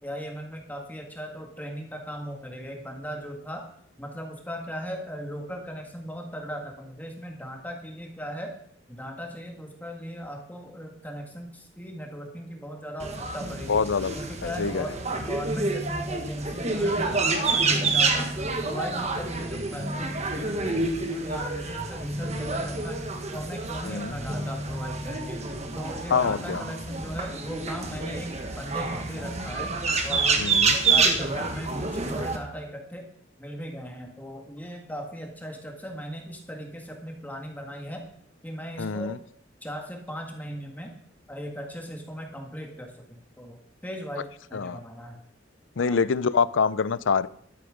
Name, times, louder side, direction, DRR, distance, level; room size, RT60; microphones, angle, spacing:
voice 1, 0.0-3.7 4.0-8.5 8.9-13.8 14.1-18.4 18.6-23.0 23.3-25.4 25.7-29.7 30.0-33.1 33.4-38.1 38.4-39.2 39.6-40.9 41.3-45.2 45.8-46.0, equal, 10° left, 2 dB, 1.8 m, -38 dB
sound 1, 13.0-32.4, right 3 dB, 35° right, 1.4 m, -28 dB
voice 2, 13.7-14.2 14.4-14.9 23.8-24.2 26.1-26.6 30.4-30.7 38.8-39.2 44.5-44.8 45.8-47.3, left 5 dB, 80° left, 17 dB, 0.5 m, -25 dB
12.5 x 9.5 x 5.1 m, 0.64 s
head